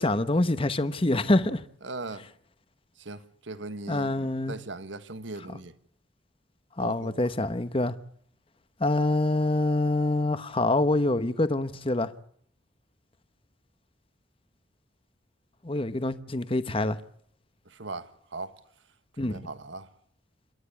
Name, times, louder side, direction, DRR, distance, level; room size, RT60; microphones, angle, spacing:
voice 1, 0.0-1.6 3.9-4.6 6.8-8.0 8.8-12.1 15.6-17.0 19.2-19.4, left 2 dB, 30° left, 1.0 m, -25 dB
voice 2, 1.8-2.2 3.0-5.7 6.8-7.2 17.7-18.6 19.2-19.9, right 2 dB, 75° right, 1.5 m, -39 dB
27.5 x 12.5 x 8.5 m
head